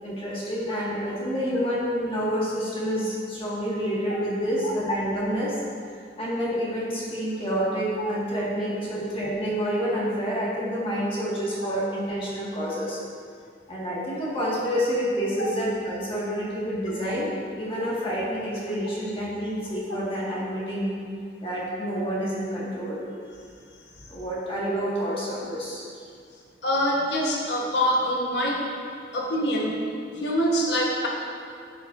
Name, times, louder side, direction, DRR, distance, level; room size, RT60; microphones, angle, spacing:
voice 1, 0.0-5.6 6.2-13.0 13.7-20.9 21.4-23.0 24.1-25.8, equal, 30° left, -7 dB, 1.8 m, -28 dB
voice 2, 4.5-4.9 15.4-15.5 26.6-28.7 29.1-29.8 30.1-31.1, equal, 80° left, -2 dB, 1.2 m, -25 dB
11.0 x 8.0 x 2.6 m, 2.3 s
head